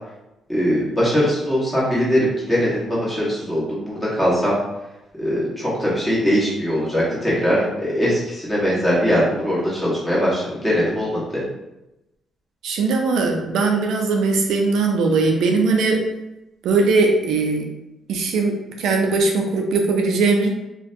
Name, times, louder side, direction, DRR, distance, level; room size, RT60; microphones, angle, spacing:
voice 1, 0.5-4.6 5.2-11.4, equal, 10° left, -8 dB, 1.2 m, -21 dB
voice 2, 12.6-16.0 16.6-17.7 18.1-20.5, right 3 dB, 80° right, 2 dB, 0.3 m, -19 dB
2.5 x 2.1 x 2.5 m, 0.94 s
cardioid pair, 90°, 0 cm